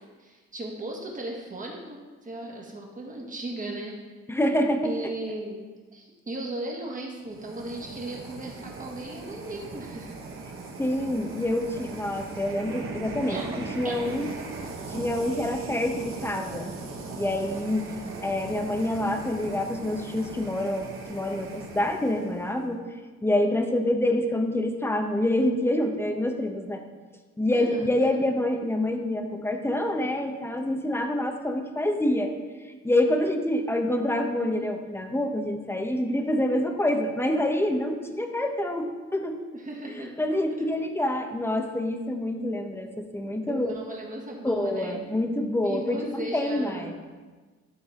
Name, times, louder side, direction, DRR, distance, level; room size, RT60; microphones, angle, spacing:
voice 1, 0.2-4.0 4.8-5.6 5.9-10.2 13.3-14.3 27.5-28.0 39.5-40.1 43.4-45.0 45.6-46.9, right 1 dB, 25° right, -1 dB, 1.6 m, -36 dB
voice 2, 4.3-4.9 10.8-14.3 14.9-16.7 17.1-17.9 18.2-22.8 23.2-26.8 27.4-32.3 32.7-39.4 40.2-43.8 44.4-46.9, left 1 dB, 10° left, 4 dB, 0.8 m, -27 dB
sound 1, 7.2-22.6, right 3 dB, 45° right, 1.3 m, -39 dB
12.0 x 4.0 x 3.6 m, 1.4 s
cardioid pair, 90°, 30 cm